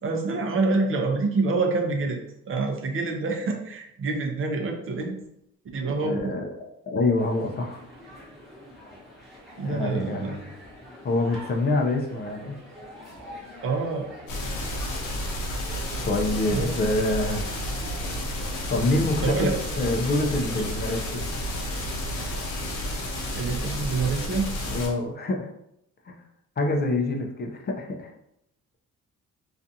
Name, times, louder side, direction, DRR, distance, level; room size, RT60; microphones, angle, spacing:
voice 1, 0.0-2.2 2.4-5.2 5.7-6.3 9.6-10.5 13.6-14.1 16.5-16.8 18.8-19.5 19.8-20.1 20.5-20.7 23.3-24.5, right 3 dB, 45° right, 3 dB, 0.5 m, -27 dB
voice 2, 6.0-6.5 6.9-7.8 9.6-10.4 11.0-12.6 16.1-17.4 18.7-21.3 24.7-25.5 26.1-26.2 26.6-28.1, left 2 dB, 35° left, 2 dB, 0.5 m, -26 dB
sound 1, 7.2-22.4, left 1 dB, ahead, 1.0 m, -46 dB
sound 2, 14.3-24.9, left 1 dB, 80° left, 0.8 m, -31 dB
2.4 x 2.4 x 2.6 m, 0.78 s
cardioid pair, 90°, 30 cm